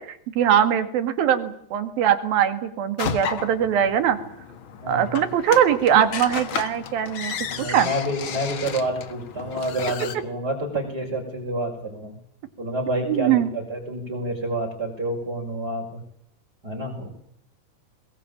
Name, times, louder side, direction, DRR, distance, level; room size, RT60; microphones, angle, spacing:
voice 1, 0.0-4.2 4.9-7.3 7.7-7.9 13.1-13.5, right 9 dB, 70° right, 10 dB, 3.7 m, -21 dB
sound 1, 3.0-10.2, left 7 dB, 60° left, 1.3 m, -33 dB
voice 2, 4.8-5.2 7.4-12.2 12.6-16.0 16.6-17.1, right 1 dB, 25° right, -2 dB, 6.0 m, -28 dB
23.0 x 21.5 x 8.8 m, 0.68 s
omnidirectional pair, 4.5 m